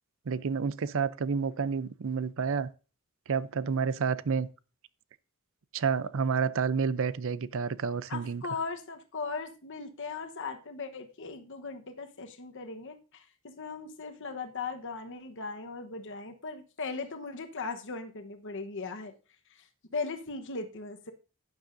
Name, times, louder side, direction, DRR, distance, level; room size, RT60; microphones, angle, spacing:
voice 1, 0.3-2.7 3.3-4.5 5.7-8.4, right 5 dB, 60° right, 0.5 m, -29 dB
voice 2, 8.1-19.1 19.6-19.7 19.9-21.1, left 4 dB, 60° left, 1.1 m, -38 dB
12.0 x 10.0 x 2.6 m
head